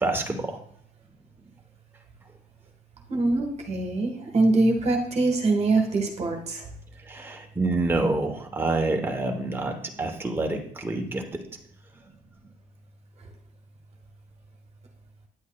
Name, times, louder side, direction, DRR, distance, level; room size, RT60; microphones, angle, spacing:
voice 1, 0.0-0.6 7.0-11.4, right 2 dB, 15° right, 2 dB, 1.1 m, -27 dB
voice 2, 3.1-6.7, right 2 dB, 40° right, 2 dB, 1.4 m, -23 dB
9.6 x 8.1 x 2.3 m, 0.63 s
cardioid pair, 110°, 17 cm